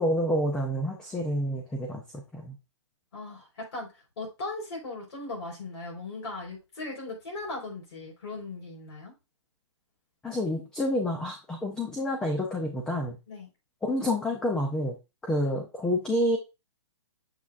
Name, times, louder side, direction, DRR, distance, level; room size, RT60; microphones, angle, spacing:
voice 1, 0.0-2.6 10.2-13.2 13.8-14.9 15.2-16.4, left 1 dB, 5° left, 2 dB, 0.5 m, -28 dB
voice 2, 3.1-9.1 13.3-13.5 15.3-15.5, left 2 dB, 60° left, -1 dB, 4.1 m, -38 dB
7.2 x 6.1 x 2.5 m, 0.27 s
hypercardioid pair, 165°, 15 cm